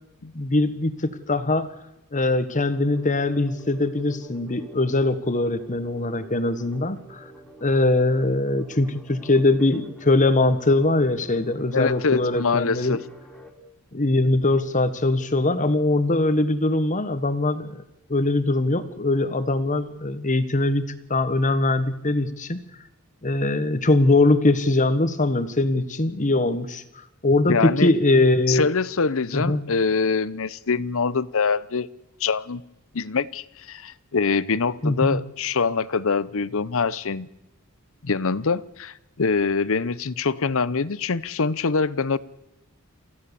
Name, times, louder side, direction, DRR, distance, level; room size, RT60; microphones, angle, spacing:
voice 1, 0.3-1.7 2.1-7.2 7.6-13.0 13.9-17.8 18.1-20.8 21.1-22.6 23.2-26.8 27.2-28.7 29.3-29.6 34.8-35.2, left 2 dB, 35° left, 12 dB, 1.4 m, -22 dB
sound 1, 2.7-13.5, right 1 dB, ahead, 3.7 m, -47 dB
voice 2, 11.7-13.0 27.5-27.9 28.5-31.9 32.2-32.6 32.9-37.3 38.0-42.2, left 4 dB, 65° left, 18 dB, 0.8 m, -24 dB
28.0 x 15.5 x 7.0 m, 0.91 s
head